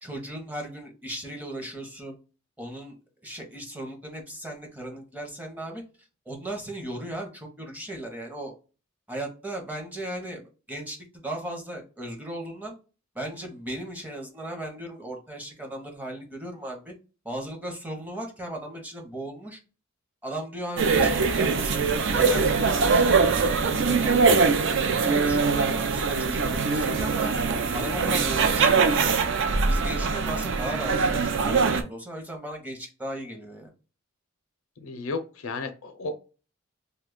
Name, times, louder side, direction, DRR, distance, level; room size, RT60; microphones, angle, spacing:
voice 1, 0.0-2.2 2.6-3.0 3.2-5.8 6.3-8.5 9.1-12.7 13.1-16.9 17.2-19.6 20.2-24.5 24.8-27.4 27.7-29.3 29.7-33.7, right 1 dB, 10° right, 1 dB, 0.7 m, -37 dB
sound 1, 20.8-31.8, right 4 dB, 60° right, 0.4 m, -22 dB
voice 2, 34.8-36.2, left 3 dB, 80° left, 9 dB, 0.5 m, -33 dB
2.8 x 2.2 x 3.6 m, 0.34 s
head